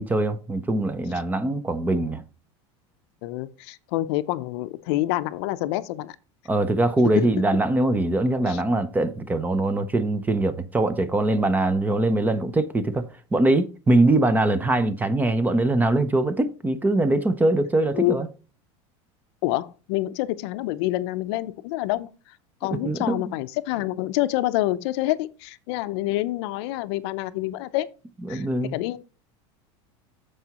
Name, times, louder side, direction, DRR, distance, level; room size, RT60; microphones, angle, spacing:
voice 1, 0.0-2.2 6.5-18.3 22.8-23.2 28.3-28.8, right 2 dB, 10° right, 0.6 m, -22 dB
voice 2, 3.2-6.1 7.1-7.3 8.5-8.6 17.9-18.2 19.4-22.1 22.6-27.9 28.3-28.5 28.7-29.0, left 16 dB, 65° left, 0.6 m, -27 dB
14.0 x 4.7 x 2.9 m
supercardioid pair, 140°, 15 cm